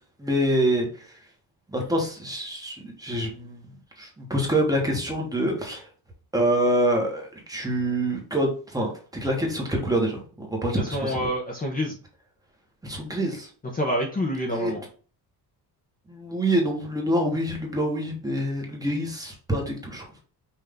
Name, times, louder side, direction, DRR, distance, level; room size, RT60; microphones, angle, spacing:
voice 1, 0.2-1.2 1.7-3.7 4.0-5.9 6.3-11.3 12.8-13.5 14.5-14.7 16.1-20.1, right 1 dB, 10° right, 0 dB, 1.1 m, -26 dB
voice 2, 10.9-12.0 13.7-14.8, equal, 20° left, -1 dB, 0.7 m, -27 dB
5.6 x 2.6 x 3.5 m, 0.40 s
cardioid pair, 155°, 42 cm